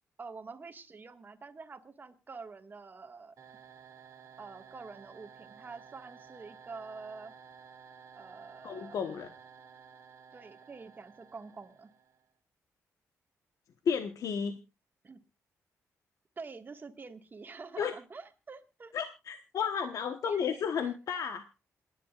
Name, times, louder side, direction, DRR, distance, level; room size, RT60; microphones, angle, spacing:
voice 1, 0.2-3.3 4.4-7.3 8.1-9.0 10.3-11.9 15.0-15.2 16.4-18.9 20.2-20.9, right 4 dB, 35° right, 6 dB, 1.7 m, -47 dB
sound 1, 3.4-12.3, right 6 dB, 60° right, 2.2 m, -54 dB
voice 2, 8.6-9.3 13.8-14.6 17.8-17.9 18.9-21.5, left 7 dB, 70° left, 7 dB, 1.1 m, -32 dB
27.5 x 10.5 x 2.4 m, 0.27 s
cardioid pair, 100°, 6 cm